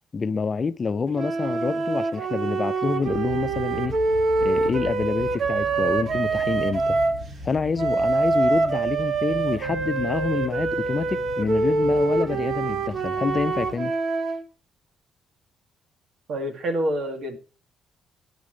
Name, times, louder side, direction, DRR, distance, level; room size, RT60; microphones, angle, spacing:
voice 1, 0.1-4.0 4.4-7.0 7.4-13.9, left 4 dB, 35° left, 0.4 m, -27 dB
sound 1, 1.1-7.2 7.8-14.4, right 3 dB, 50° right, 1.2 m, -25 dB
sound 2, 3.0-13.8, equal, 35° right, 1.7 m, -40 dB
voice 2, 16.3-17.4, equal, 65° right, 2.0 m, -27 dB
9.6 x 6.3 x 5.0 m
cardioid pair, 90°, 0 cm